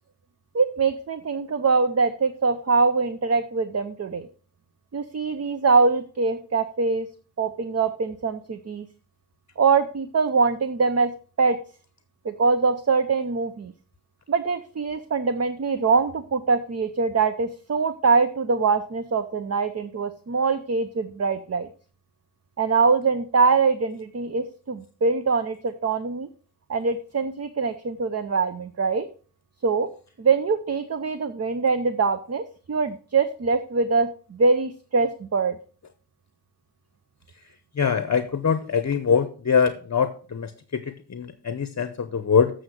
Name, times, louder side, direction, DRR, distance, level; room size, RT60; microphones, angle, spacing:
voice 1, 0.5-4.3 4.9-7.1 7.4-8.9 9.6-11.1 11.4-11.6 12.2-13.7 14.3-21.7 22.6-26.3 26.7-29.1 29.6-29.9 30.2-35.6, right 4 dB, 35° right, 10 dB, 0.7 m, -23 dB
voice 2, 37.8-42.5, left 6 dB, 40° left, 11 dB, 0.8 m, -23 dB
7.9 x 6.4 x 6.3 m, 0.41 s
wide cardioid pair, 95°, 42 cm